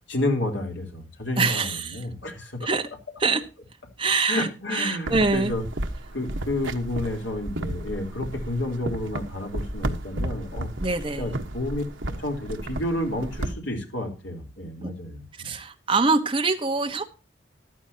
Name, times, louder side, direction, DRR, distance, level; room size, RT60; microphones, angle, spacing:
voice 1, 0.1-2.7 4.3-5.6 6.1-10.7 11.2-15.5, left 1 dB, 70° left, 2 dB, 3.6 m, -30 dB
voice 2, 1.4-2.1 2.6-2.8 3.2-3.4 4.0-5.5 10.8-11.3 14.8-14.9 15.4-17.0, right 3 dB, 25° right, 5 dB, 1.2 m, -24 dB
sound 1, 5.1-13.5, right 1 dB, 75° right, 1.3 m, -33 dB
14.5 x 12.0 x 2.8 m, 0.31 s
head